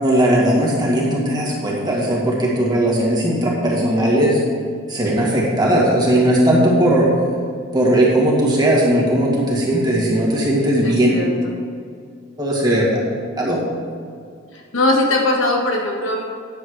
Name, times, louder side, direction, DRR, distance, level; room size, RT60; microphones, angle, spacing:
voice 1, 0.0-4.4 4.9-7.1 7.7-11.1 12.4-13.0 13.4-13.6, right 1 dB, 20° right, -4 dB, 2.0 m, -17 dB
voice 2, 10.8-11.5 12.7-12.8 14.5-16.2, left 2 dB, 70° left, 0 dB, 1.7 m, -20 dB
10.0 x 7.8 x 4.9 m, 2.3 s
head